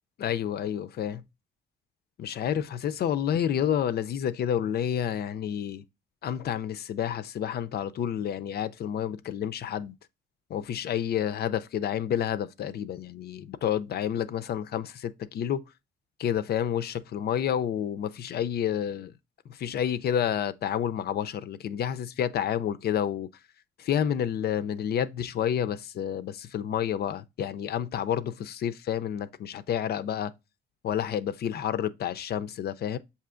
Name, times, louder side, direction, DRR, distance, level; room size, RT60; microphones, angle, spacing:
voice 1, 0.2-1.2 2.2-5.8 6.2-9.9 10.5-15.6 16.2-19.1 19.5-23.3 23.8-30.3 30.8-33.0, left 9 dB, 55° left, 0.4 m, -29 dB
6.6 x 2.7 x 2.4 m
cardioid pair, 90°, 20 cm